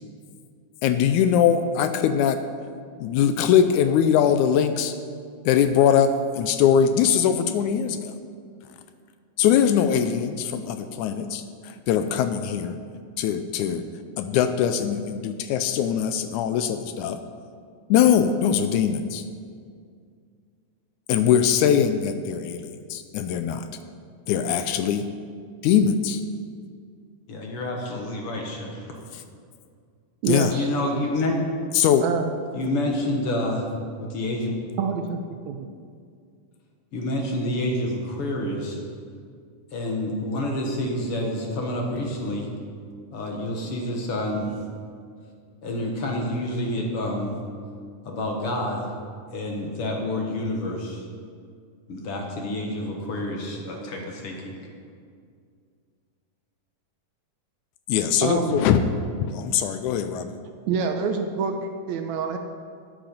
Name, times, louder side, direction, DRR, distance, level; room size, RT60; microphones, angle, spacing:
voice 1, 0.8-2.4 3.0-4.9 5.5-8.1 9.4-12.8 13.2-13.8 14.2-17.2 17.9-19.2 21.1-23.7 24.3-25.1 25.6-26.2 30.3-30.5 31.7-32.0 57.9-58.8 59.2-60.4, left 8 dB, 80° left, 10 dB, 1.9 m, -21 dB
voice 2, 27.3-28.9 30.5-31.4 32.5-33.7 34.0-34.5 36.9-38.8 39.7-42.5 43.1-44.6 45.6-47.4 48.0-48.9 49.3-51.0 51.9-54.6, left 1 dB, 55° left, 0 dB, 1.9 m, -28 dB
voice 3, 30.2-30.7 32.0-32.3 34.8-35.7 58.2-58.6 60.7-62.4, right 5 dB, 75° right, 6 dB, 1.8 m, -26 dB
13.0 x 8.9 x 5.3 m, 2.2 s
omnidirectional pair, 3.6 m